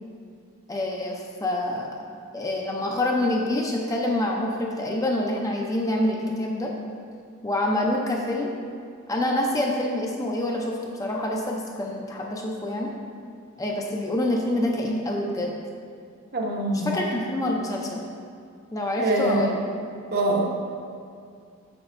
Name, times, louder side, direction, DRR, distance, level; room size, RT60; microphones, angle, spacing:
voice 1, 0.7-1.9 2.3-6.7 7.4-8.5 9.1-12.9 13.6-15.6 16.8-18.0 18.7-19.6, left 1 dB, 15° left, -1 dB, 0.4 m, -26 dB
voice 2, 16.3-17.0 19.0-19.5 20.1-20.5, right 1 dB, 45° right, 0 dB, 0.8 m, -24 dB
6.9 x 6.1 x 2.5 m, 2.3 s
head